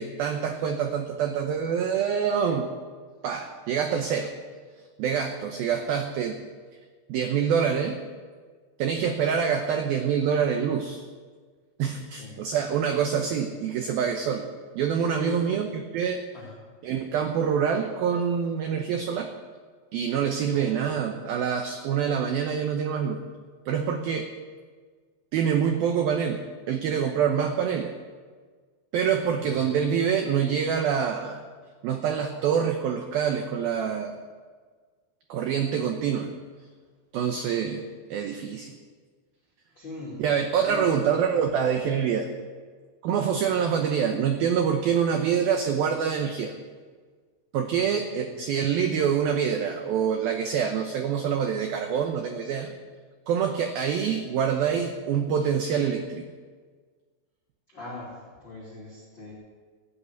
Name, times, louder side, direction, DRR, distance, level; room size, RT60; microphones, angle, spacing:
voice 1, 0.0-2.7 3.2-4.3 5.0-6.4 7.1-8.0 8.8-11.0 11.8-14.5 14.7-16.2 16.8-19.3 19.9-23.2 23.7-24.3 25.3-27.9 28.9-31.4 31.8-34.1 35.3-36.3 37.1-37.8 38.1-38.7 40.2-42.3 43.0-46.5 47.5-52.7 53.3-56.2, right 7 dB, 90° right, 5 dB, 2.1 m, -26 dB
voice 2, 15.2-15.6 16.3-16.7 20.5-21.1 29.3-29.6 39.7-40.2 40.7-41.3 48.2-48.4 57.7-59.3, left 3 dB, 30° left, -6 dB, 2.8 m, -41 dB
16.5 x 8.5 x 8.1 m, 1.5 s
omnidirectional pair, 5.5 m